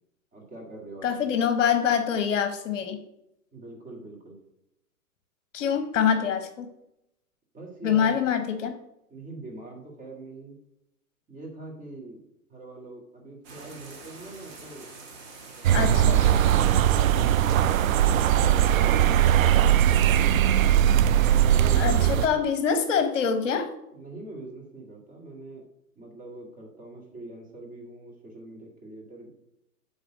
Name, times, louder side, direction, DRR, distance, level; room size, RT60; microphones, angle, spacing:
voice 1, 0.3-1.3 3.5-4.4 7.5-8.3 9.1-10.6 11.3-12.2 12.5-14.9 21.4-22.4 23.9-25.7 26.0-29.3, right 2 dB, 15° right, -1 dB, 2.0 m, -43 dB
voice 2, 1.0-3.0 5.5-6.7 7.8-8.7 15.7-16.5 21.8-23.7, left 7 dB, 55° left, 7 dB, 1.1 m, -25 dB
sound 1, 13.4-20.3, right 4 dB, 40° right, 2.3 m, -45 dB
sound 2, 15.6-22.3, right 11 dB, 60° right, 0.5 m, -20 dB
7.9 x 3.9 x 6.2 m, 0.82 s
hypercardioid pair, 135°, 46 cm